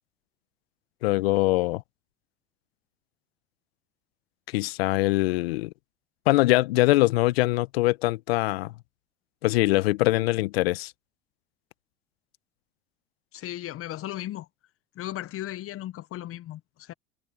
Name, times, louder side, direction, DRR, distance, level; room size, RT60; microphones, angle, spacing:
voice 1, 1.0-1.8 4.5-5.7 6.3-8.7 9.4-10.9, left 19 dB, 75° left, 1.0 m, -23 dB
voice 2, 13.3-14.5 15.0-16.9, left 13 dB, 45° left, 0.9 m, -36 dB
hypercardioid pair, 75°, 30 cm